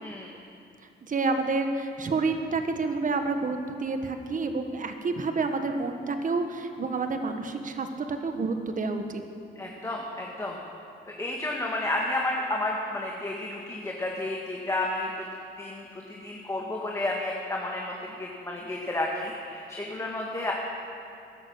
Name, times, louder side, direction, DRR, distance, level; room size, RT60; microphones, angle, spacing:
voice 1, 0.0-0.3 9.5-10.6 11.2-15.3 15.6-20.5, left 2 dB, 15° left, -1 dB, 1.7 m, -31 dB
voice 2, 1.1-9.2, right 3 dB, 40° right, 7 dB, 1.4 m, -29 dB
13.5 x 11.0 x 7.1 m, 2.6 s
cardioid pair, 90°, 20 cm